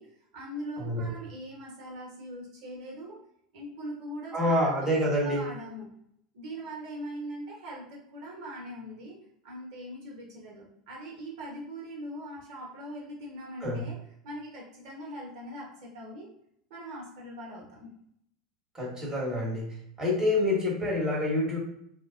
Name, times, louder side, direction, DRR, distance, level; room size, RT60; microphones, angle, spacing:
voice 1, 0.0-3.2 3.5-4.9 5.2-5.9 6.3-9.2 9.4-14.0 14.2-16.3 16.7-17.9, equal, 55° right, -2 dB, 0.9 m, -41 dB
voice 2, 0.8-1.1 4.3-5.4 13.6-13.9 18.7-21.6, left 1 dB, 15° right, -3 dB, 1.1 m, -27 dB
3.0 x 2.1 x 2.4 m, 0.73 s
figure-of-eight pair, 85°, 4 cm